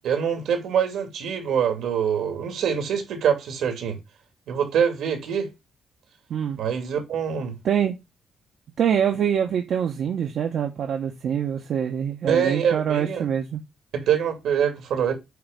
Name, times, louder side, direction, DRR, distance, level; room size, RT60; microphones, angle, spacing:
voice 1, 0.0-4.0 4.5-5.5 6.6-7.6 12.3-13.3 13.9-15.1, right 8 dB, 85° right, 2.5 m, -24 dB
voice 2, 8.8-13.6, right 8 dB, 70° right, 1.0 m, -24 dB
7.9 x 3.0 x 5.2 m
cardioid pair, 100°, 0 cm